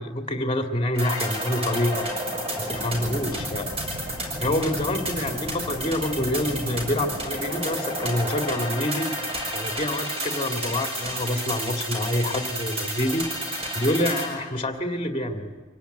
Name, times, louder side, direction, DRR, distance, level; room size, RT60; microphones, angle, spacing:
voice 1, 0.0-2.1 2.6-3.7 4.4-9.1 9.5-13.2 13.7-15.6, left 1 dB, 25° left, 4 dB, 2.0 m, -27 dB
sound 1, 0.9-14.3, right 1 dB, 30° right, 6.4 m, -31 dB
25.0 x 18.0 x 9.3 m, 1.4 s
head